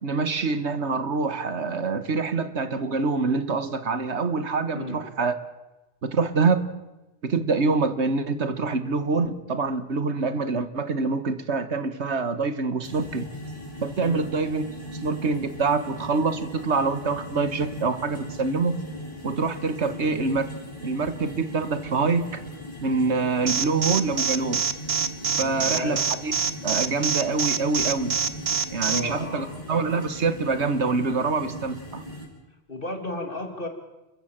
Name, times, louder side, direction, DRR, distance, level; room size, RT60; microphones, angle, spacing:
voice 1, 0.0-5.3 6.0-6.6 7.2-13.3 13.8-14.6 15.0-18.7 19.2-20.5 20.8-22.2 22.8-24.6 25.4-26.3 26.6-28.2 28.7-32.0, right 4 dB, 85° right, 11 dB, 1.8 m, -25 dB
voice 2, 4.7-5.1 14.0-14.3 19.9-20.1 25.4-26.0 28.8-29.5 32.7-33.7, left 2 dB, 50° left, 5 dB, 3.1 m, -34 dB
sound 1, 12.8-32.3, equal, 30° left, 5.4 m, -38 dB
Alarm, 23.5-29.0, right 6 dB, 65° right, 1.3 m, -24 dB
30.0 x 14.5 x 7.5 m, 1.0 s
omnidirectional pair, 1.1 m